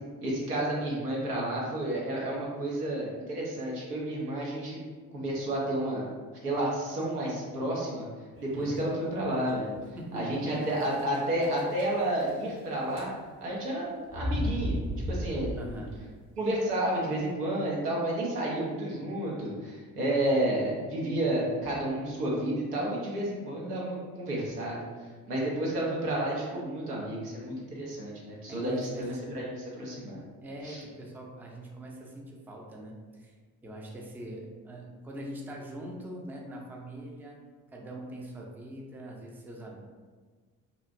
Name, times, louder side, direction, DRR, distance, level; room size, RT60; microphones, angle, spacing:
voice 1, 0.2-4.8 5.1-6.1 6.4-8.1 8.4-9.7 10.1-13.1 13.4-14.8 15.1-15.7 16.4-30.2 30.6-30.8, right 1 dB, 90° right, -4 dB, 0.6 m, -31 dB
sound 1, 8.3-8.8 9.4-9.5 9.8-9.9 10.8-11.2 11.4-12.6 12.9-13.4 14.1-16.0, equal, 70° right, 1.4 m, -34 dB
voice 2, 10.0-10.6 15.6-15.9 28.5-29.2 30.4-33.4 33.6-37.4 37.7-39.8, right 1 dB, 5° right, -1 dB, 0.4 m, -42 dB
3.0 x 2.4 x 2.4 m, 1.5 s
figure-of-eight pair, 40°, 45 cm